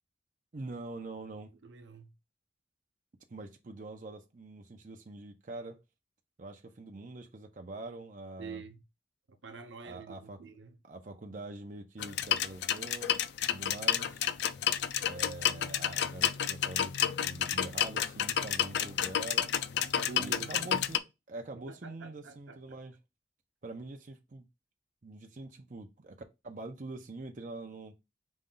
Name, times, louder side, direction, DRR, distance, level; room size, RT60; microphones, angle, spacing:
voice 1, 0.5-1.5 3.3-5.8 6.4-8.6 9.8-10.4 10.8-13.1 13.5-14.2 15.0-19.5 20.2-22.9 23.6-24.4 25.0-26.2 26.4-28.0, right 2 dB, 45° right, 0.5 m, -44 dB
voice 2, 1.6-2.1 8.4-8.8 9.3-10.8 19.8-20.8 21.5-22.8, right 4 dB, 90° right, 0.7 m, -47 dB
sound 1, 12.0-21.0, left 9 dB, 65° left, 0.3 m, -30 dB
5.2 x 2.3 x 3.7 m
head